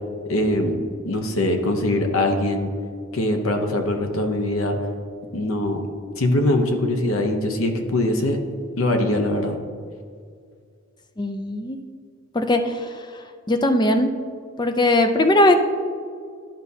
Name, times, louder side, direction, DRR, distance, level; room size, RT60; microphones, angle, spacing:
voice 1, 0.3-0.8 1.1-2.7 3.1-4.8 5.3-5.8 6.2-8.4 8.8-9.6, left 1 dB, 75° left, 5 dB, 0.8 m, -22 dB
voice 2, 11.2-11.8 12.3-12.9 13.5-14.1 14.6-15.5, left 1 dB, 20° left, 6 dB, 0.4 m, -19 dB
11.5 x 5.2 x 2.7 m, 2.1 s
head